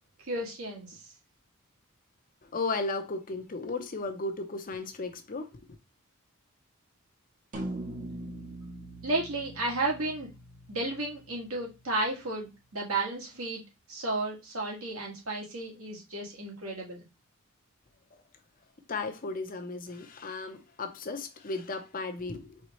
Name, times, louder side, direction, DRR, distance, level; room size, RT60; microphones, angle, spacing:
voice 1, 0.3-1.0 9.0-10.3 10.7-13.6 13.9-17.1, right 2 dB, 75° right, 1.9 m, -33 dB
voice 2, 2.4-5.6 18.9-22.6, left 3 dB, 40° left, 0.7 m, -35 dB
sound 1, 7.5-12.0, right 1 dB, 40° right, 1.0 m, -42 dB
4.4 x 3.6 x 3.1 m
head